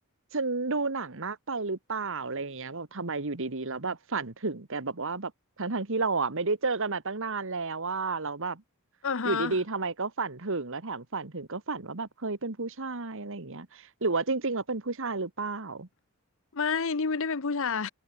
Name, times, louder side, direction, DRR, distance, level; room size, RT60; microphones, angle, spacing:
voice 1, 0.3-5.3 5.6-8.6 9.2-15.9, right 3 dB, 60° right, 1.7 m, -31 dB
voice 2, 9.0-9.5 16.5-17.9, left 5 dB, 65° left, 0.9 m, -29 dB
head